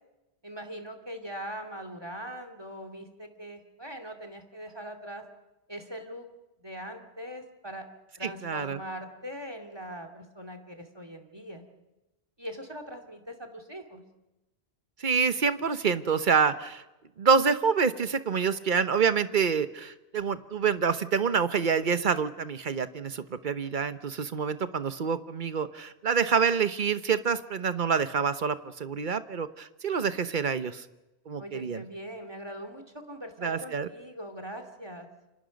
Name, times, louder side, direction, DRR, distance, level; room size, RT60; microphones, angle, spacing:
voice 1, 0.4-5.2 5.7-6.3 6.6-7.9 8.2-11.6 12.4-14.0 31.4-35.1, equal, 25° right, 6 dB, 2.5 m, -41 dB
voice 2, 8.2-8.8 15.0-16.8 17.2-30.8 31.3-31.8 33.4-33.9, right 6 dB, 50° right, 11 dB, 1.1 m, -27 dB
29.0 x 25.0 x 5.3 m, 1.0 s
omnidirectional pair, 1.1 m